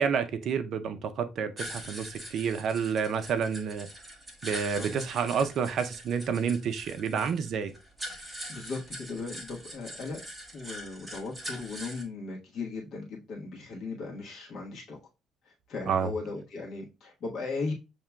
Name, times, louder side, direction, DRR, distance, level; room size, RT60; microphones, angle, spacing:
voice 1, 0.0-3.9 4.4-7.7 15.9-16.1, right 6 dB, 50° right, 0.5 m, -29 dB
sound 1, 1.6-12.0, equal, 10° right, 1.1 m, -43 dB
voice 2, 4.7-5.0 8.5-10.2 10.5-15.0 15.7-17.7, left 3 dB, 50° left, 1.2 m, -37 dB
6.9 x 2.9 x 2.2 m
cardioid pair, 165°, 0 cm